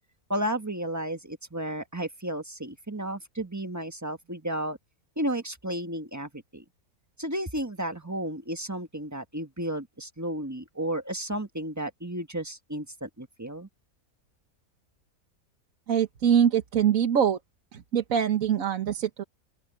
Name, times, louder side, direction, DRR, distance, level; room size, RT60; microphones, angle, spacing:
voice 1, 0.3-4.8 5.2-6.6 7.2-13.7, right 1 dB, 10° right, 1.3 m, -33 dB
voice 2, 15.9-17.4 17.7-19.2, right 8 dB, 65° right, 1.6 m, -24 dB
open air
omnidirectional pair, 1.6 m